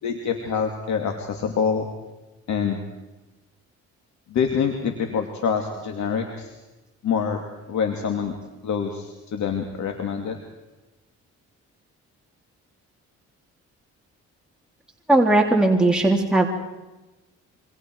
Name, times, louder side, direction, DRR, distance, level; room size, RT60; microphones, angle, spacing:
voice 1, 0.0-1.9 2.5-2.8 4.3-6.5 7.0-7.4 7.7-8.3 8.6-10.4, left 6 dB, 65° left, 4 dB, 2.7 m, -25 dB
voice 2, 15.1-16.5, right 2 dB, 5° right, 0 dB, 3.1 m, -18 dB
28.0 x 25.5 x 4.8 m, 1.1 s
cardioid pair, 90°, 30 cm